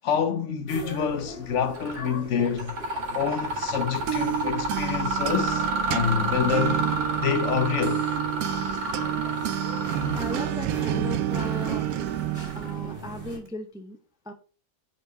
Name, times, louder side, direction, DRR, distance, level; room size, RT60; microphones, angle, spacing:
voice 1, 0.0-2.7 3.1-6.8 7.2-8.1, left 7 dB, 65° left, 0.9 m, -27 dB
sound 1, 0.7-13.4, left 1 dB, 40° left, 2.3 m, -41 dB
Mechanisms, 1.7-2.1 2.4-13.0, right 2 dB, 55° right, 1.9 m, -31 dB
sound 2, 3.7-13.4, right 13 dB, 80° right, 1.0 m, -30 dB
voice 2, 10.1-11.9 12.5-14.0 14.3-14.4, left 1 dB, 5° right, 0.4 m, -37 dB
5.4 x 4.5 x 4.4 m
omnidirectional pair, 1.5 m